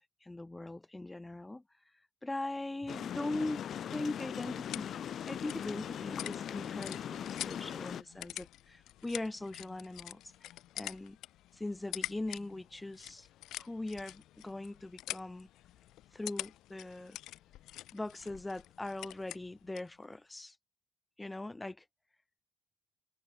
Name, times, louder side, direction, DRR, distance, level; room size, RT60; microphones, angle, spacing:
voice 1, 0.2-1.6 2.2-11.2 11.5-13.3 13.6-15.5 16.1-17.2 17.9-20.5 21.2-21.8, left 2 dB, 10° left, 3.3 m, -41 dB
sound 1, 2.9-8.0, left 9 dB, 50° left, 4.6 m, -40 dB
sound 2, 4.4-20.0, left 14 dB, 65° left, 4.4 m, -47 dB
cardioid pair, 110°, 0 cm